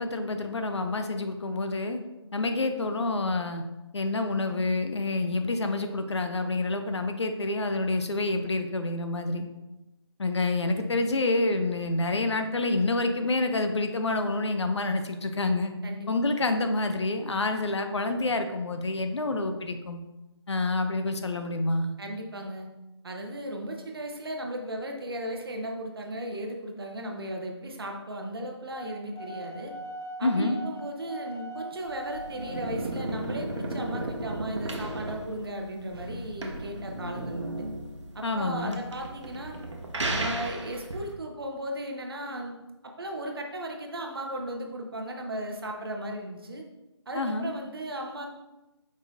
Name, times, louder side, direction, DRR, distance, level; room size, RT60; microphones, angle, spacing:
voice 1, 0.0-2.0 2.3-3.6 3.9-9.5 10.2-15.7 16.1-20.0 20.5-21.9 30.2-30.6 38.2-38.8 47.1-47.5, left 2 dB, 70° left, 7 dB, 0.6 m, -28 dB
voice 2, 22.0-22.7 23.0-29.7 30.2-37.7 38.1-39.6 40.1-42.5 42.8-46.6 47.1-48.3, right 1 dB, 55° right, 2 dB, 0.9 m, -36 dB
sound 1, 28.7-32.7, right 1 dB, ahead, 1.0 m, -40 dB
sound 2, 31.9-41.1, right 1 dB, 85° right, 1.0 m, -35 dB
5.0 x 4.0 x 2.7 m, 1.0 s
figure-of-eight pair, 165°, 15 cm